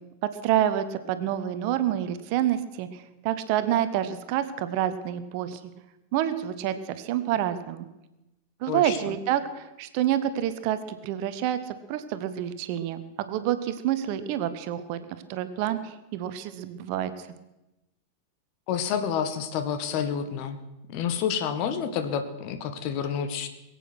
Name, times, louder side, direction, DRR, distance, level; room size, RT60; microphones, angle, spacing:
voice 1, 0.2-5.6 6.1-7.9 8.6-15.0 15.3-17.1, right 11 dB, 45° right, 11 dB, 1.1 m, -28 dB
voice 2, 8.7-9.1 18.7-20.6 20.9-23.5, left 7 dB, 45° left, 9 dB, 1.5 m, -29 dB
22.0 x 8.4 x 6.2 m, 0.97 s
figure-of-eight pair, 90°, 0 cm